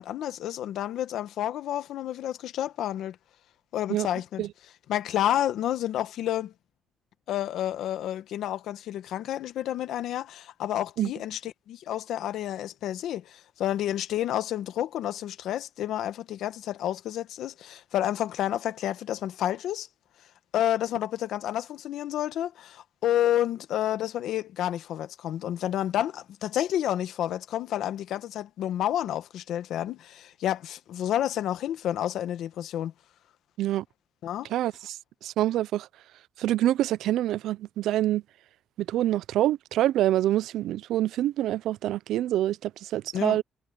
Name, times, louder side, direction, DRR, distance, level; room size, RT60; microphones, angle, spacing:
voice 1, 0.0-3.2 3.7-4.4 4.9-6.5 7.3-19.9 20.5-32.9 34.2-34.5 43.1-43.4, left 12 dB, 70° left, 1.2 m, -30 dB
voice 2, 34.5-35.9 36.4-38.2 38.8-43.4, right 13 dB, 80° right, 0.4 m, -26 dB
cardioid pair, 165°, 0 cm